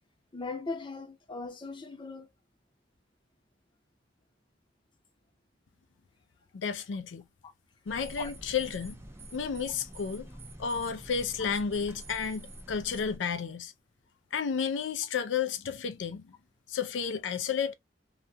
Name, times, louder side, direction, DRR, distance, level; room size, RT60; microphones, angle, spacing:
voice 1, 0.3-2.3 7.4-7.5 8.2-8.3, left 3 dB, 25° left, 0.7 m, -39 dB
voice 2, 6.5-7.2 7.9-9.0 9.3-10.3 10.6-13.7 14.3-16.3 16.7-17.7, left 6 dB, 80° left, 0.4 m, -32 dB
sound 1, 7.9-13.2, right 1 dB, 15° right, 0.5 m, -47 dB
2.4 x 2.2 x 2.6 m
head